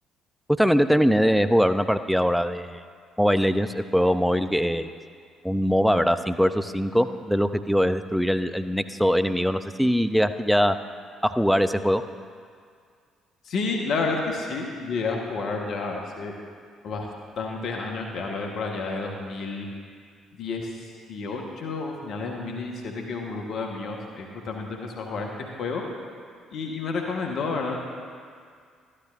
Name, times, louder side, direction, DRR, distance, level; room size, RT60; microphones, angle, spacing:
voice 1, 0.6-2.8 3.2-4.9 5.4-10.8 11.2-12.0, equal, ahead, 10 dB, 0.5 m, -22 dB
voice 2, 13.4-16.3 16.8-17.1 17.4-19.6 20.3-20.8 21.1-25.3 25.6-25.8 26.5-27.8, left 4 dB, 60° left, 1 dB, 1.2 m, -30 dB
13.0 x 12.0 x 2.5 m, 2.1 s
hypercardioid pair, 50°, 0 cm